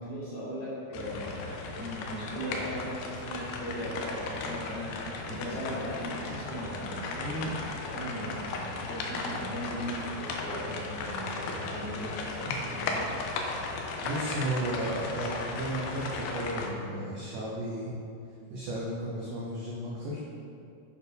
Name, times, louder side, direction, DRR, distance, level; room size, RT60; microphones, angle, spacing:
voice 1, 0.0-13.1, equal, 50° left, -10 dB, 3.1 m, -38 dB
sound 1, 0.9-16.7, left 3 dB, 80° left, 2.4 m, -36 dB
voice 2, 14.0-18.0 18.5-20.2, right 1 dB, 80° right, -5 dB, 1.9 m, -34 dB
8.9 x 4.5 x 5.2 m, 2.5 s
omnidirectional pair, 5.1 m